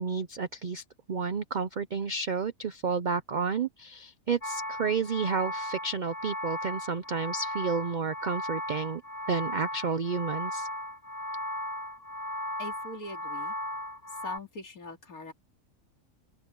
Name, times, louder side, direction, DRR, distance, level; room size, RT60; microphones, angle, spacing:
voice 1, 0.0-9.0 9.3-10.7, right 5 dB, 50° right, 0.6 m, -31 dB
sound 1, 4.4-14.4, left 1 dB, 30° left, 1.7 m, -36 dB
voice 2, 12.6-13.5 14.1-15.3, left 2 dB, 85° left, 3.1 m, -42 dB
open air
omnidirectional pair, 1.5 m